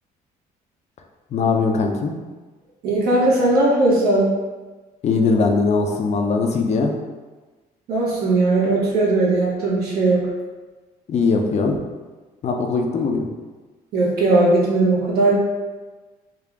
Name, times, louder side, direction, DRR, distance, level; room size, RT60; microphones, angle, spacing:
voice 1, 1.3-2.1 5.0-6.9 11.1-11.8 12.4-13.3, left 4 dB, 40° left, 3 dB, 0.5 m, -20 dB
voice 2, 2.8-4.3 7.9-10.2 13.9-15.3, right 2 dB, 65° right, -6 dB, 1.3 m, -18 dB
3.7 x 2.4 x 3.4 m, 1.3 s
cardioid pair, 110°, 17 cm